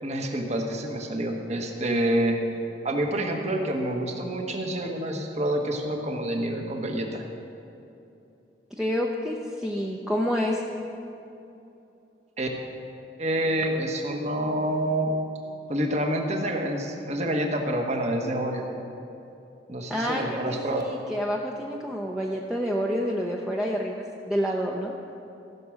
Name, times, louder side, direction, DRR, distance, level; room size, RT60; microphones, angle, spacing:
voice 1, 0.0-2.4 2.8-7.2 12.4-12.5 13.2-15.2 15.7-18.7 19.7-20.8, right 1 dB, 40° right, 2 dB, 1.2 m, -27 dB
voice 2, 8.8-10.6 19.9-24.9, equal, 5° right, -2 dB, 0.6 m, -28 dB
15.0 x 6.0 x 6.4 m, 2.8 s
head